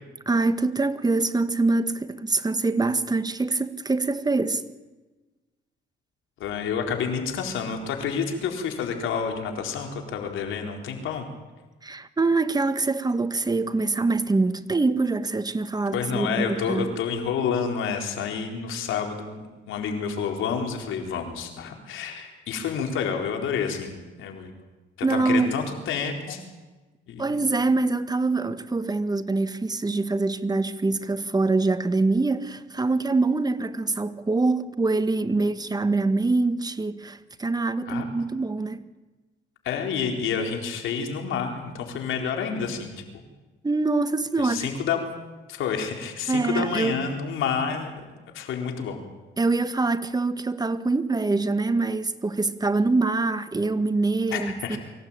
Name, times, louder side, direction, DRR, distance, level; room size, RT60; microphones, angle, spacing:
voice 1, 0.2-4.6 11.8-16.9 25.0-25.5 27.2-38.8 43.6-44.7 46.3-47.0 49.4-54.8, right 3 dB, 20° right, 1.5 m, -24 dB
voice 2, 6.4-11.3 15.9-24.5 25.1-26.4 27.1-27.4 37.9-38.1 39.6-43.2 44.4-45.0 45.5-47.9 48.3-49.0 54.3-54.8, left 6 dB, 85° left, 4.2 m, -29 dB
24.5 x 16.0 x 8.8 m
cardioid pair, 90°, 20 cm